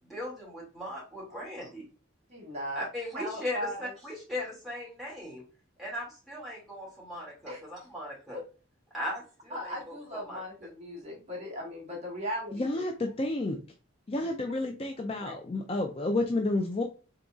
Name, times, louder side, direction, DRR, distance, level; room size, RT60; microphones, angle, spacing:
voice 1, 0.1-1.8 2.8-5.4 5.8-8.4 8.9-10.0 10.2-10.4, left 1 dB, ahead, 2.2 m, -38 dB
voice 2, 2.3-2.9 3.1-3.9 7.5-7.6 9.5-12.6, equal, 35° right, 1.4 m, -37 dB
voice 3, 12.5-13.6 14.1-16.8, left 2 dB, 30° left, 0.4 m, -30 dB
3.9 x 3.8 x 2.3 m
head